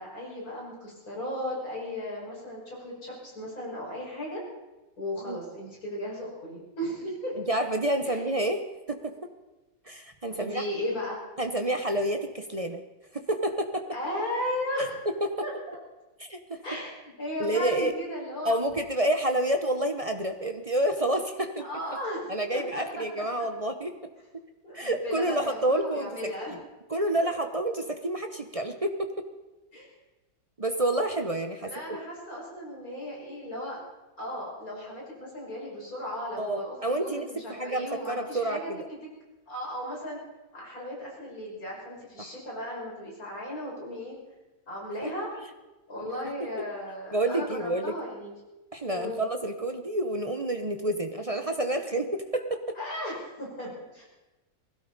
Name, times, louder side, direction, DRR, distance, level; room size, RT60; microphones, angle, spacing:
voice 1, 0.0-4.4 5.0-7.4 8.0-8.2 10.4-11.2 13.9-14.9 15.4-15.8 16.6-18.5 21.6-22.3 22.5-23.3 24.6-26.5 29.7-29.9 31.6-33.8 34.2-38.7 39.5-40.2 40.5-44.2 44.7-45.3 45.9-48.4 48.9-49.2 52.8-54.0, left 1 dB, 50° left, -4 dB, 6.0 m, -36 dB
voice 2, 7.5-8.6 8.9-9.1 9.9-10.6 11.4-12.8 13.1-13.9 14.8-15.3 16.2-16.6 17.4-17.9 18.4-21.6 22.3-23.9 24.3-24.4 24.7-26.6 26.9-29.2 30.6-32.0 36.4-38.9 42.2-42.3 45.0-45.1 47.1-47.9 48.7-52.8, right 1 dB, 30° right, 6 dB, 0.6 m, -29 dB
20.0 x 16.5 x 4.1 m, 1.1 s
omnidirectional pair, 1.9 m